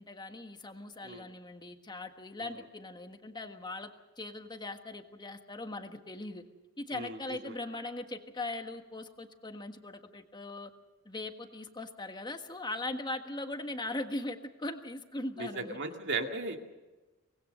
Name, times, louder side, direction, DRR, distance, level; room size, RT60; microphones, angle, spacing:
voice 1, 0.0-6.4 6.8-10.7 11.0-15.8, left 2 dB, 20° left, 6 dB, 1.5 m, -40 dB
voice 2, 15.4-16.6, right 3 dB, 55° right, 4 dB, 2.2 m, -36 dB
24.5 x 20.0 x 6.7 m, 1.1 s
head